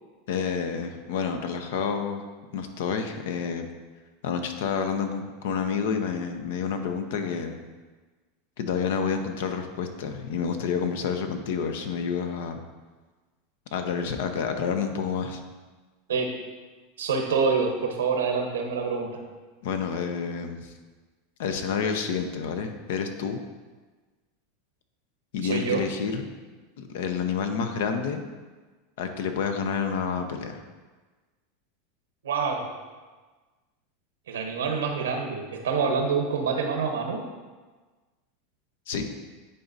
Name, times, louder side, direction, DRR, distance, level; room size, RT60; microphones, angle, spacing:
voice 1, 0.3-2.2 2.5-3.7 4.2-7.6 8.6-12.6 13.7-15.4 19.6-20.7 21.4-23.4 25.3-26.3 26.8-28.2 29.0-30.6 38.9-39.1, left 6 dB, 75° left, 7 dB, 0.7 m, -29 dB
voice 2, 17.0-19.1 25.4-25.8 32.2-32.6 34.3-37.2, right 5 dB, 90° right, 3 dB, 1.0 m, -26 dB
10.0 x 4.1 x 2.7 m, 1.3 s
hypercardioid pair, 110°, 0 cm